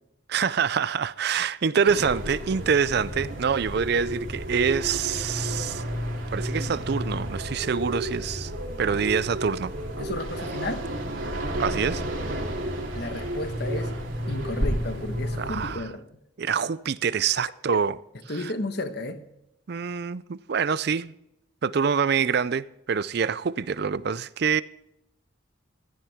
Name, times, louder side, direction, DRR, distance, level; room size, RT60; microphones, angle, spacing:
voice 1, 0.3-5.8 6.3-8.5 8.8-9.7 11.6-12.0 15.4-15.8 16.4-18.0 18.4-18.5 19.7-21.1 21.6-24.6, right 6 dB, 50° right, 0.4 m, -26 dB
sound 1, 1.9-15.8, equal, 80° right, 3.0 m, -31 dB
voice 2, 10.0-10.9 12.9-14.0 14.3-16.1 18.3-19.2, left 1 dB, 55° left, 1.2 m, -33 dB
16.0 x 14.0 x 3.6 m
head